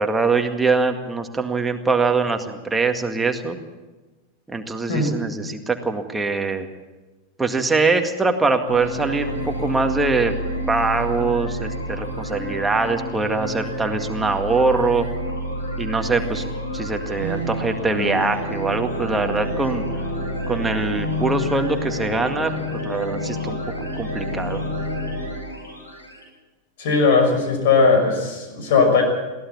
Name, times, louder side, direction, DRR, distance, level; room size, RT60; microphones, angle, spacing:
voice 1, 0.0-3.6 4.5-6.7 7.4-10.3 10.7-15.1 15.8-16.4 16.7-19.8 20.5-23.6 23.9-24.6, right 3 dB, 10° right, 5 dB, 2.0 m, -23 dB
sound 1, 8.7-26.2, equal, 80° left, 7.3 m, -29 dB
voice 2, 26.8-29.0, left 4 dB, 55° left, 4 dB, 6.2 m, -18 dB
22.5 x 16.5 x 7.2 m, 1.2 s
figure-of-eight pair, 90°, 0 cm